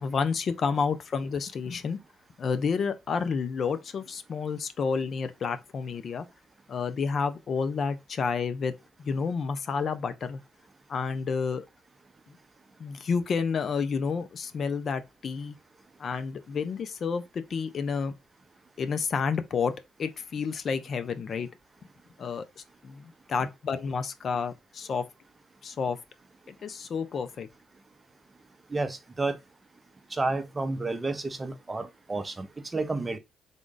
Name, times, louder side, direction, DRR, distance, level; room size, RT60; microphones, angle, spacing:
voice 1, 0.0-2.0 2.4-6.3 6.7-8.7 9.0-10.4 10.9-11.6 12.8-15.6 16.0-18.1 18.8-19.7 20.0-21.5 22.2-25.1 25.6-26.0 26.5-27.5, left 5 dB, 50° left, 0.5 m, -30 dB
voice 2, 28.7-29.4 30.1-33.2, right 3 dB, 25° right, 0.7 m, -31 dB
3.7 x 2.5 x 3.8 m
cardioid pair, 90°, 0 cm